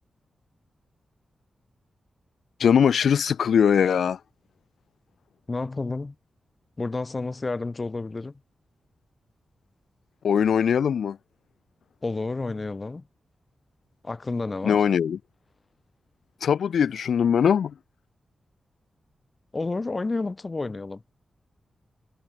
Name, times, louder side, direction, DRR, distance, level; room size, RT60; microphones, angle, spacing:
voice 1, 2.6-4.2 10.2-11.2 14.6-15.2 16.4-17.7, left 7 dB, 75° left, 0.5 m, -21 dB
voice 2, 5.5-6.1 6.8-8.3 12.0-13.0 14.0-14.8 19.5-21.0, left 3 dB, 25° left, 1.4 m, -30 dB
wide cardioid pair, 160°, 0 cm